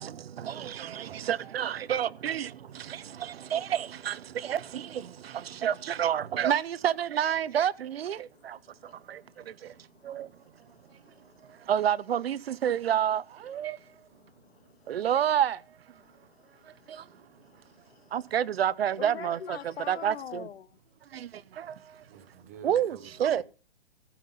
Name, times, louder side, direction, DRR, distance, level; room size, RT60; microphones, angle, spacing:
voice 1, 0.4-2.5 3.2-4.2 4.4-4.8 5.6-8.2 10.1-10.3 11.7-13.8 14.9-15.6 18.1-19.6 19.9-20.4 22.6-23.4, right 10 dB, 65° right, 0.6 m, -28 dB
voice 2, 2.8-3.5 5.2-5.6 8.3-11.7 13.7-15.1 16.0-18.3 19.0-20.8 23.2-23.4, left 9 dB, 65° left, 0.7 m, -48 dB
voice 3, 21.6-23.4, right 7 dB, 15° right, 0.7 m, -50 dB
15.0 x 5.8 x 5.4 m
hypercardioid pair, 175°, 33 cm